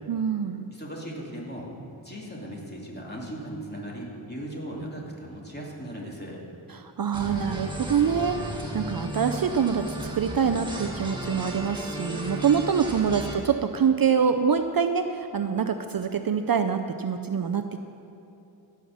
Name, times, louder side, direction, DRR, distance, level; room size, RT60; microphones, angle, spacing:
voice 1, 0.1-0.6 6.7-8.4 8.7-17.8, right 7 dB, 50° right, 8 dB, 0.6 m, -25 dB
voice 2, 0.7-1.7 2.0-6.4, right 1 dB, 20° left, -3 dB, 2.7 m, -37 dB
sound 1, 7.1-13.4, right 1 dB, 10° right, 1.9 m, -34 dB
16.5 x 5.8 x 7.2 m, 2.9 s
wide cardioid pair, 70°, 45 cm